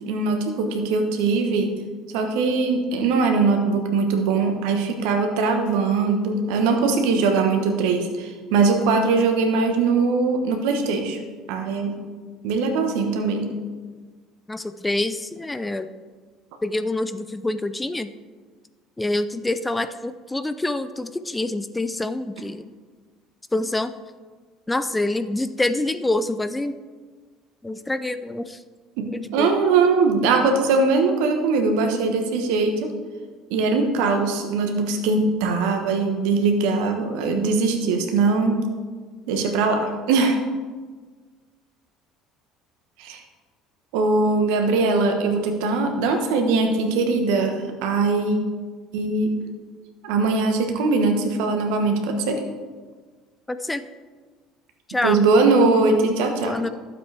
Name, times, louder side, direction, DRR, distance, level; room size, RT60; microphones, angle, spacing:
voice 1, 0.0-1.7 2.1-11.2 11.5-12.0 12.4-13.5 29.0-29.1 29.3-32.9 33.5-38.6 39.3-40.4 43.0-43.2 43.9-48.4 48.9-49.3 50.0-52.4 55.0-56.5, right 4 dB, 70° right, 4 dB, 1.2 m, -21 dB
voice 2, 14.5-15.9 16.6-18.1 19.0-22.7 23.5-23.9 24.7-26.7 27.6-28.6 29.1-29.5 53.5-53.9 54.9-55.2 56.4-56.7, left 2 dB, 15° left, 12 dB, 0.5 m, -26 dB
12.0 x 7.5 x 3.4 m, 1.5 s
hypercardioid pair, 65°, 0 cm